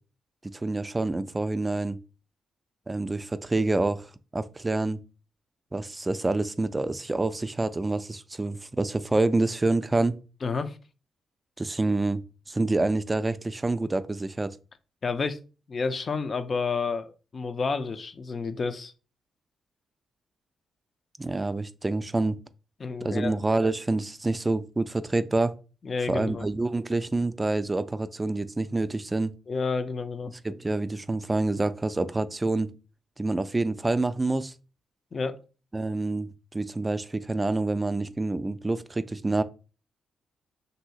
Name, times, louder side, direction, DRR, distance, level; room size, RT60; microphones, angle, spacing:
voice 1, 0.5-2.0 2.9-5.0 5.7-10.2 11.6-14.6 21.2-22.4 23.0-25.6 26.1-29.3 30.4-32.7 33.2-34.5 35.7-39.4, right 2 dB, 25° right, 0.3 m, -27 dB
voice 2, 10.4-10.8 15.0-15.4 15.7-18.9 22.8-23.4 25.8-26.5 29.5-30.3 35.1-35.4, left 4 dB, 50° left, 0.4 m, -30 dB
3.0 x 2.7 x 2.8 m
supercardioid pair, 50°, 0 cm